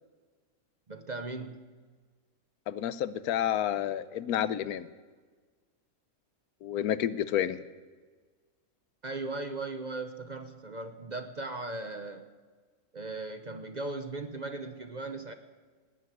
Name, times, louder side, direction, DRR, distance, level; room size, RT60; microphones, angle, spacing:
voice 1, 0.9-1.7 9.0-12.3 12.9-15.3, right 2 dB, 40° right, 8 dB, 0.7 m, -38 dB
voice 2, 2.7-4.9 6.6-7.6, left 10 dB, 85° left, 15 dB, 1.2 m, -30 dB
18.5 x 7.6 x 9.5 m, 1.4 s
omnidirectional pair, 1.5 m